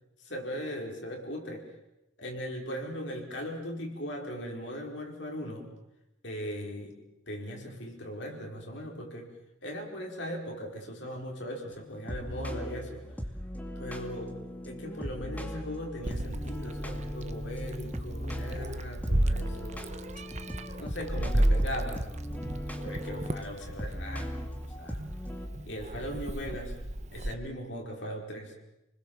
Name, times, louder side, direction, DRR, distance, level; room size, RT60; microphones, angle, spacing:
voice 1, 0.2-1.7 2.2-5.7 6.2-7.0 7.3-9.3 9.6-13.1 13.8-14.4 14.6-19.9 20.8-22.1 22.8-24.3 24.8-25.0 25.6-26.8 27.1-28.5, equal, 65° left, 0 dB, 5.2 m, -39 dB
sound 1, 11.7-25.5, equal, 10° left, 2.4 m, -39 dB
Meow, 16.0-27.3, right 1 dB, 35° right, 1.2 m, -33 dB
29.5 x 21.0 x 7.3 m, 0.92 s
head